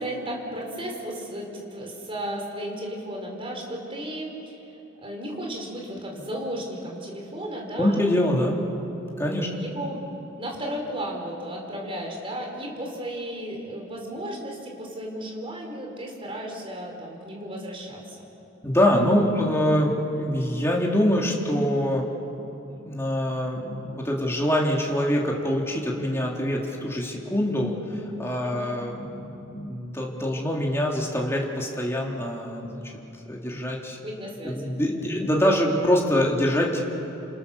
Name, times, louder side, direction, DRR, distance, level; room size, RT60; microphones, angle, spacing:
voice 1, 0.0-4.7 5.0-8.0 9.4-10.0 10.4-18.2 28.4-28.7 34.0-34.7, right 1 dB, 30° right, 0 dB, 4.9 m, -34 dB
voice 2, 7.8-8.6 9.2-9.5 18.6-22.1 22.7-32.8 33.3-34.0 34.4-36.8, equal, 15° left, -2 dB, 3.2 m, -24 dB
29.0 x 27.0 x 7.0 m, 2.9 s
head